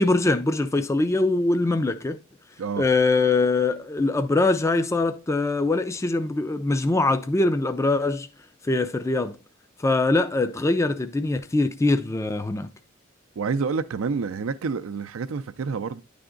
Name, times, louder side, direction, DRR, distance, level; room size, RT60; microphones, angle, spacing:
voice 1, 0.0-2.2 2.8-8.3 8.7-9.4 9.8-12.7, left 2 dB, 15° left, 0.4 m, -22 dB
voice 2, 13.4-16.0, right 5 dB, 80° right, 0.4 m, -28 dB
10.0 x 3.5 x 3.7 m
head